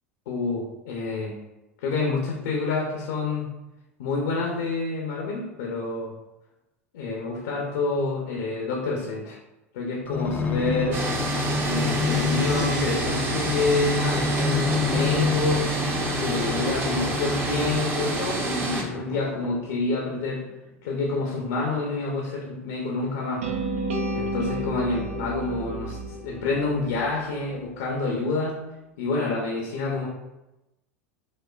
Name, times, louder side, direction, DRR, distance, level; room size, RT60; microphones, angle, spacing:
voice 1, 0.3-1.4 1.8-3.5 4.0-6.1 6.9-9.4 9.7-11.0 11.6-15.7 16.2-20.4 20.8-23.5 24.1-28.6 29.0-30.1, left 3 dB, 65° left, -1 dB, 0.7 m, -28 dB
sound 1, 10.1-18.0 18.6-19.9 20.5-20.6, left 5 dB, 20° left, 0.4 m, -29 dB
sound 2, 10.9-18.8, right 2 dB, 30° right, 0.7 m, -28 dB
sound 3, 23.4-27.5, right 2 dB, 75° right, 0.6 m, -31 dB
5.1 x 2.1 x 2.3 m, 0.97 s
hypercardioid pair, 85°, 7 cm